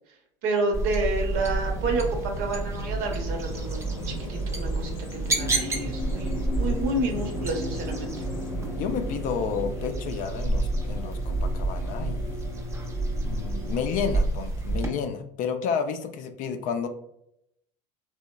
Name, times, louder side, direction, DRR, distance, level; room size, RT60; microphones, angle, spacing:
voice 1, 0.4-4.9 5.3-8.1, right 2 dB, 60° right, 3 dB, 0.7 m, -29 dB
sound 1, 0.7-14.9, right 2 dB, 15° right, 0.5 m, -30 dB
Bird vocalization bird call bird song, 1.3-9.6, left 1 dB, 90° left, 0.6 m, -40 dB
sound 2, 5.3-13.8, left 3 dB, 10° left, 0.8 m, -38 dB
voice 2, 8.7-12.5 13.2-16.9, left 6 dB, 55° left, 7 dB, 0.4 m, -31 dB
2.9 x 2.0 x 2.2 m, 0.76 s
supercardioid pair, 95°, 17 cm